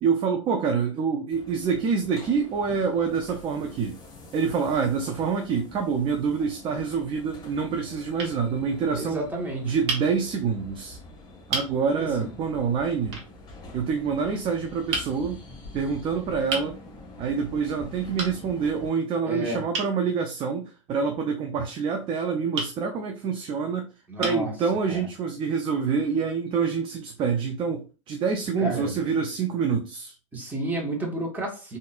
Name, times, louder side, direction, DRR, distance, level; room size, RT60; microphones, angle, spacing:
voice 1, 0.0-4.0 4.3-9.2 9.6-11.0 11.5-13.2 13.7-15.4 15.7-16.8 17.2-23.9 24.2-30.1, right 6 dB, 30° right, 5 dB, 0.5 m, -26 dB
sound 1, 1.3-18.9, left 2 dB, 25° left, 1.5 m, -46 dB
sound 2, 8.2-8.4 9.9-10.1 10.9-11.0 11.5-11.7 13.1-13.3 14.9-15.1 16.5-16.7 18.2-18.4 19.7-19.9 22.5-22.7 23.6-23.7 24.2-24.5, right 3 dB, 55° right, 1.3 m, -30 dB
voice 2, 8.9-9.7 12.0-12.3 19.3-19.6 24.1-24.5 24.9-25.1 28.6-29.1 30.3-31.8, right 1 dB, 10° right, -1 dB, 1.4 m, -31 dB
3.8 x 2.6 x 2.5 m, 0.33 s
figure-of-eight pair, 90°, 17 cm